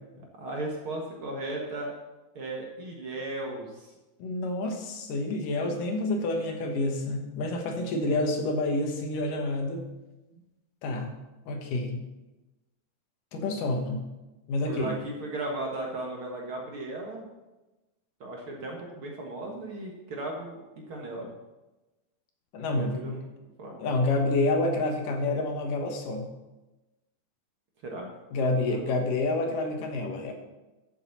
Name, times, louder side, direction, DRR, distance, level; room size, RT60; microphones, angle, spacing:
voice 1, 0.1-1.9 2.4-3.9 10.4-10.5 14.7-17.2 18.2-20.6 20.9-21.3 22.7-23.2 23.6-23.8 27.8-28.1 28.7-29.0 29.4-29.5, right 2 dB, 50° right, -1 dB, 2.0 m, -36 dB
voice 2, 4.2-9.8 10.8-11.1 11.5-12.0 13.3-14.0 14.5-15.0 22.5-23.2 23.8-26.3 28.3-30.3, left 2 dB, 80° left, 3 dB, 3.0 m, -28 dB
13.5 x 7.2 x 4.2 m, 1.1 s
omnidirectional pair, 3.7 m